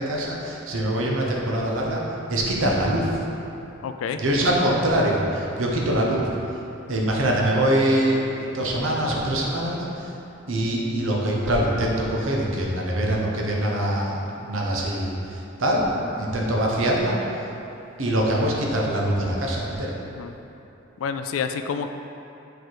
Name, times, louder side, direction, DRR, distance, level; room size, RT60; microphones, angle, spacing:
voice 1, 0.0-2.0 2.3-3.2 4.2-6.3 6.9-10.1 10.5-17.2 18.0-19.9, right 1 dB, 75° right, -2 dB, 1.0 m, -24 dB
voice 2, 3.8-4.2 20.0-20.3 21.0-21.9, left 6 dB, 90° left, 7 dB, 0.3 m, -28 dB
6.8 x 4.5 x 4.7 m, 2.9 s
head